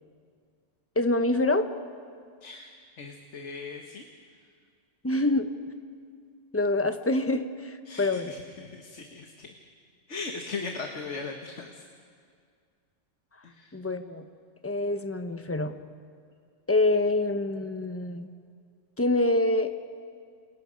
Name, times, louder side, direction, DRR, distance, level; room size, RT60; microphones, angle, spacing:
voice 1, 1.0-1.7 5.0-5.5 6.5-8.3 13.7-14.3 14.6-15.7 16.7-18.3 19.0-19.7, left 2 dB, 10° left, 8 dB, 0.9 m, -26 dB
voice 2, 2.4-4.1 7.9-9.5 10.1-11.8 13.4-13.7, left 4 dB, 70° left, 3 dB, 1.7 m, -39 dB
29.0 x 28.0 x 5.3 m, 2.2 s
omnidirectional pair, 1.3 m